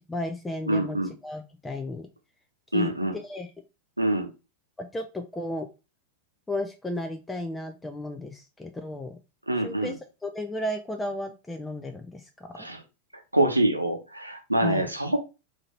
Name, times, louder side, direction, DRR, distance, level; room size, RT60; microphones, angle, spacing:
voice 1, 0.0-1.0 1.2-2.1 2.7-3.5 4.8-5.7 6.5-9.2 9.6-10.0 10.2-12.5 14.6-14.9, left 1 dB, 10° left, 5 dB, 0.5 m, -34 dB
voice 2, 0.7-1.1 2.7-3.1 4.0-4.3 9.5-9.9 12.5-12.8 13.3-15.2, right 1 dB, 85° right, 5 dB, 0.8 m, -25 dB
3.7 x 2.8 x 4.3 m, 0.29 s
figure-of-eight pair, 90°, 0 cm